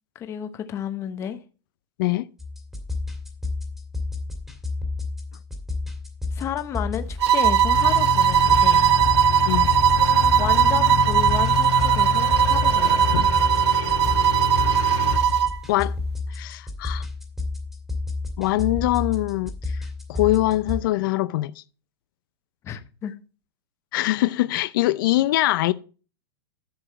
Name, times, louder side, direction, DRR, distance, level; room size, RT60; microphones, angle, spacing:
voice 1, 0.1-1.4 6.3-8.9 10.4-13.2 22.6-23.1, left 9 dB, 20° left, 0.8 m, -32 dB
sound 1, 2.4-20.8, left 3 dB, ahead, 2.0 m, -31 dB
sound 2, 7.2-15.6, right 9 dB, 80° right, 0.7 m, -19 dB
sound 3, 7.7-15.2, left 9 dB, 90° left, 2.6 m, -28 dB
voice 2, 16.3-17.1 18.4-19.8 20.1-21.6 23.9-25.7, left 17 dB, 50° left, 0.5 m, -23 dB
10.5 x 7.1 x 4.3 m
supercardioid pair, 160°, 14 cm